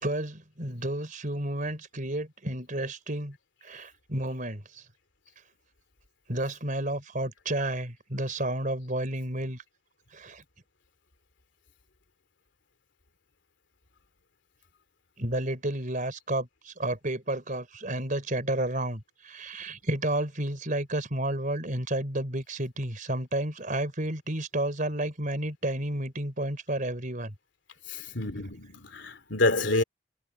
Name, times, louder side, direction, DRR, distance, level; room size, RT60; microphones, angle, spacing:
voice 1, 0.0-3.4 3.6-4.8 6.3-9.6 10.1-10.4 15.2-27.3, right 1 dB, 40° right, 4.1 m, -31 dB
voice 2, 27.9-29.8, left 2 dB, 60° left, 3.1 m, -28 dB
head